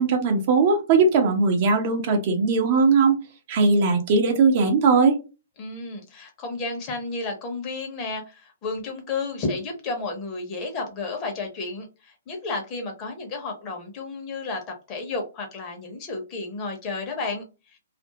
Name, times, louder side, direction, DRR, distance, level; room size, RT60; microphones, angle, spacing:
voice 1, 0.0-3.2 3.5-5.2, right 4 dB, 45° right, 4 dB, 0.7 m, -19 dB
voice 2, 5.6-17.8, left 3 dB, 30° left, 3 dB, 0.9 m, -32 dB
2.5 x 2.0 x 2.9 m, 0.30 s
hypercardioid pair, 130°, 0 cm